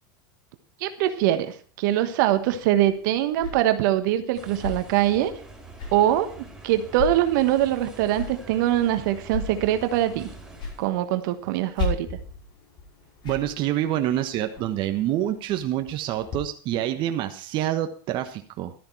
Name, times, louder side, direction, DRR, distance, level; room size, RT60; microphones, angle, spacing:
voice 1, 0.8-5.3 5.9-10.3 10.8-12.1, right 12 dB, 70° right, 9 dB, 1.3 m, -23 dB
sound 1, 2.3-16.4, left 3 dB, 45° left, 5.4 m, -38 dB
sound 2, 4.3-10.9, right 2 dB, 5° right, 4.5 m, -45 dB
voice 2, 13.2-18.7, right 12 dB, 50° right, 7 dB, 1.2 m, -27 dB
12.5 x 10.5 x 4.6 m, 0.41 s
supercardioid pair, 110°, 11 cm